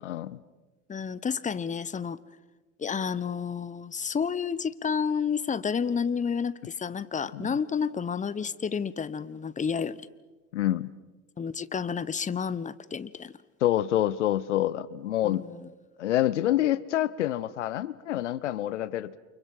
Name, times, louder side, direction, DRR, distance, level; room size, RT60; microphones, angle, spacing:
voice 1, 0.0-0.4 7.3-7.5 10.5-10.9 13.6-15.4 16.0-19.2, left 13 dB, 80° left, 17 dB, 0.8 m, -27 dB
voice 2, 0.9-2.2 2.8-10.0 11.4-13.3 15.2-15.6, left 6 dB, 20° left, 17 dB, 1.0 m, -30 dB
29.5 x 28.5 x 5.5 m, 1.2 s
figure-of-eight pair, 65°, 35 cm